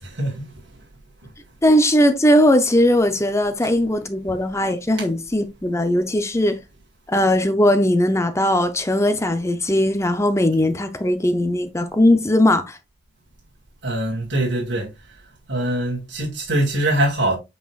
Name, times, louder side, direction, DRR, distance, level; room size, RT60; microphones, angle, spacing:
voice 1, 0.0-0.5 13.8-14.9 15.5-17.4, right 1 dB, 70° right, 2.1 m, -23 dB
voice 2, 1.6-6.6 7.1-12.8, left 1 dB, 15° left, 0.6 m, -19 dB
8.1 x 4.8 x 2.4 m
head